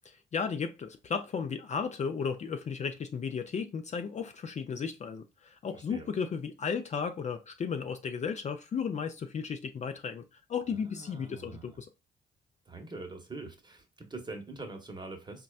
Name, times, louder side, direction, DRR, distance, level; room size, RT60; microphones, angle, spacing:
voice 1, 0.3-11.9, left 6 dB, 40° left, 0.4 m, -34 dB
voice 2, 5.7-6.1 10.8-11.8 12.7-15.4, right 3 dB, 25° right, 1.0 m, -44 dB
4.1 x 2.2 x 2.3 m
cardioid pair, 70°, 18 cm